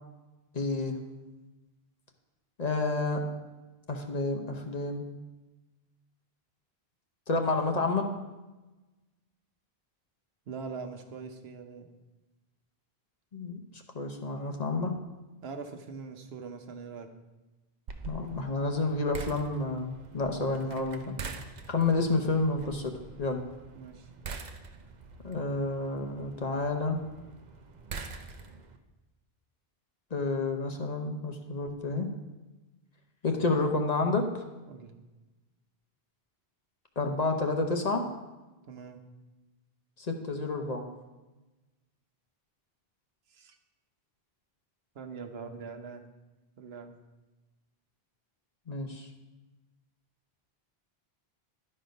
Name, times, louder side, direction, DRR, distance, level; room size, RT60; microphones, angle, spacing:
voice 1, 0.5-1.0 2.6-3.2 3.9-5.1 7.3-8.1 13.3-15.0 18.0-21.2 21.7-22.9 23.2-23.4 25.2-27.0 30.1-32.1 33.2-34.4 37.0-38.0 40.0-40.9 48.7-49.1, left 3 dB, 45° left, 3 dB, 0.8 m, -30 dB
voice 2, 10.5-11.9 15.4-17.1 23.7-24.1 34.7-34.9 38.7-39.0 43.3-43.6 44.9-46.1 46.6-46.9, right 5 dB, 75° right, 6 dB, 1.0 m, -42 dB
fence gate shut, 17.9-28.8, right 4 dB, 50° right, 0.7 m, -45 dB
11.5 x 4.3 x 5.2 m, 1.1 s
omnidirectional pair, 1.0 m